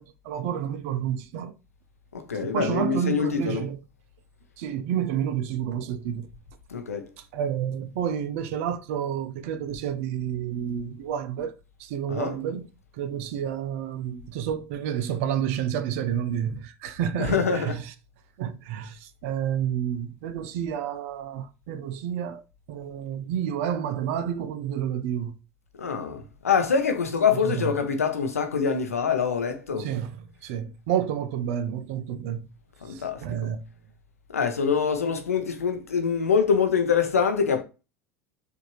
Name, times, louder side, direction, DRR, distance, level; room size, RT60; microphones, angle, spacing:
voice 1, 0.3-1.5 2.4-3.8 4.6-6.3 7.3-11.5 11.8-12.7 13.0-17.8 18.4-19.0 19.2-22.4 22.7-25.4 27.4-27.7 29.8-30.1 30.4-32.5 33.2-33.6, right 9 dB, 65° right, 0.6 m, -29 dB
voice 2, 2.1-3.7 6.7-7.1 12.1-12.4 17.2-17.8 25.8-29.9 32.8-33.4 34.3-37.6, left 6 dB, 90° left, 0.7 m, -25 dB
4.6 x 2.7 x 3.0 m
hypercardioid pair, 75°, 8 cm